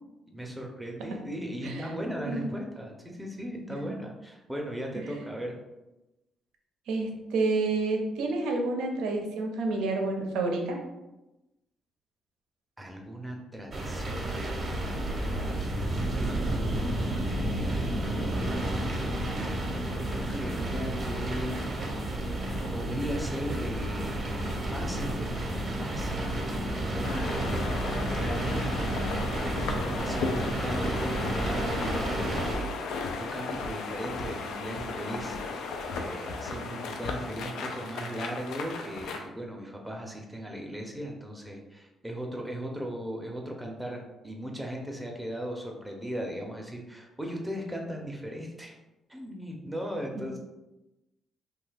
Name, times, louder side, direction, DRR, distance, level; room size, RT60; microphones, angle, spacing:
voice 1, 0.3-5.6 12.8-15.6 17.3-19.0 19.6-19.7 20.1-21.7 22.7-28.6 29.3-32.8 33.2-35.4 36.0-48.7 49.1-50.4, equal, 5° right, 0 dB, 0.6 m, -38 dB
voice 2, 6.9-10.8 50.1-50.4, right 3 dB, 90° right, 2 dB, 0.5 m, -29 dB
sound 1, 13.7-32.6, right 1 dB, 40° right, 0.7 m, -31 dB
sound 2, 20.0-27.8, left 1 dB, 30° left, 0.7 m, -46 dB
sound 3, 27.0-39.2, left 4 dB, 80° left, 0.3 m, -35 dB
2.8 x 2.3 x 3.2 m, 1.0 s
cardioid pair, 90°, 0 cm